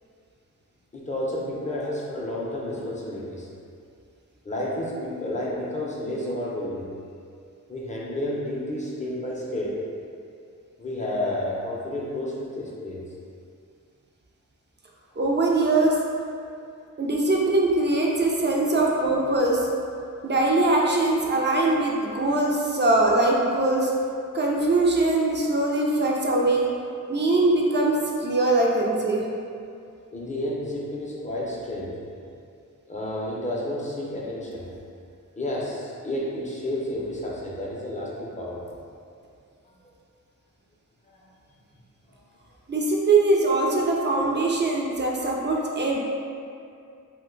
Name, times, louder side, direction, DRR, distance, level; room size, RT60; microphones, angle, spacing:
voice 1, 0.9-3.5 4.4-6.9 7.7-9.8 10.8-13.0 30.1-32.0 32.9-34.7 35.4-38.6 41.1-41.3, left 1 dB, 20° left, -5 dB, 0.6 m, -31 dB
voice 2, 15.2-16.0 17.0-19.7 20.2-23.9 24.3-26.7 27.1-29.3 42.7-46.0, right 2 dB, 35° right, -2 dB, 0.5 m, -22 dB
2.6 x 2.2 x 3.8 m, 2.4 s
wide cardioid pair, 70°, 33 cm